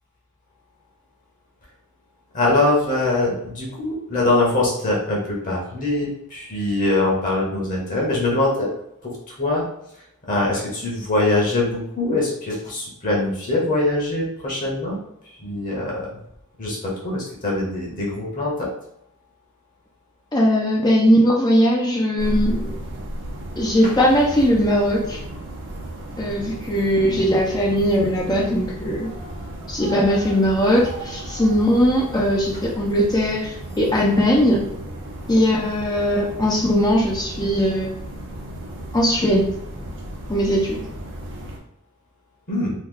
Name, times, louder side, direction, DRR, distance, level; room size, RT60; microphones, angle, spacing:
voice 1, 2.3-8.7 9.0-9.6 10.3-15.0 15.2-16.1 16.6-18.7 23.8-24.0 27.1-27.2 42.5-42.7, left 2 dB, 35° left, -3 dB, 1.0 m, -23 dB
voice 2, 20.3-22.7 23.6-25.2 26.2-29.1 29.7-34.6 35.3-37.9 38.9-39.5 40.3-40.8, equal, 20° left, -2 dB, 0.5 m, -19 dB
sound 1, 22.2-41.6, right 1 dB, 55° right, 0.7 m, -34 dB
3.0 x 2.3 x 3.6 m, 0.77 s
head